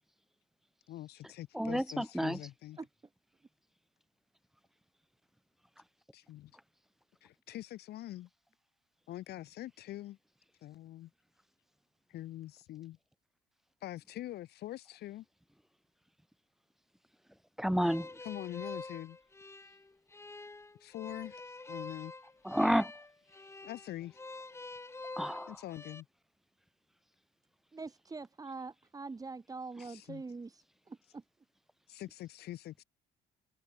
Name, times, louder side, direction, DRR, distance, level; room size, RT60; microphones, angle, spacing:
voice 1, 0.9-2.8 6.1-6.5 7.2-8.3 9.1-10.2 10.6-11.1 12.1-13.0 13.8-15.2 18.2-19.2 20.8-21.4 21.7-22.1 23.6-24.2 25.5-26.1 29.8-30.2 31.9-32.8, left 14 dB, 70° left, 4.9 m, -44 dB
voice 2, 1.5-2.4 17.6-18.1 22.4-22.9 25.2-25.5, equal, ahead, 0.5 m, -30 dB
sound 1, 17.8-26.0, left 3 dB, 15° left, 4.4 m, -47 dB
voice 3, 27.7-31.2, right 4 dB, 20° right, 4.6 m, -44 dB
cardioid pair, 110°, 17 cm